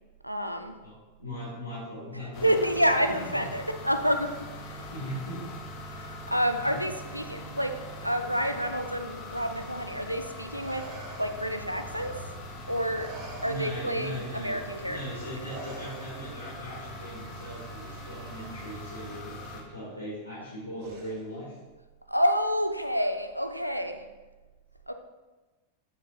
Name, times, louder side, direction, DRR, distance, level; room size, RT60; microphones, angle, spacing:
voice 1, 0.2-0.8 2.1-4.9 5.9-10.9 11.2-12.2 12.7-13.1 13.4-15.0 22.1-24.0 24.9-25.0, equal, 90° right, 7 dB, 0.6 m, -29 dB
voice 2, 0.8-2.5 3.4-3.5 4.9-5.6 6.6-6.8 13.4-14.6 14.8-21.6, equal, 85° left, -10 dB, 2.6 m, -39 dB
sound 1, 2.3-19.6, left 1 dB, 40° left, 1.3 m, -42 dB
Respiratory sounds, 8.2-12.6 12.9-16.6 17.8-18.0 19.0-19.6 20.8-21.4, right 2 dB, 45° right, 1.7 m, -47 dB
8.8 x 7.3 x 2.7 m, 1.2 s
figure-of-eight pair, 90°, 0 cm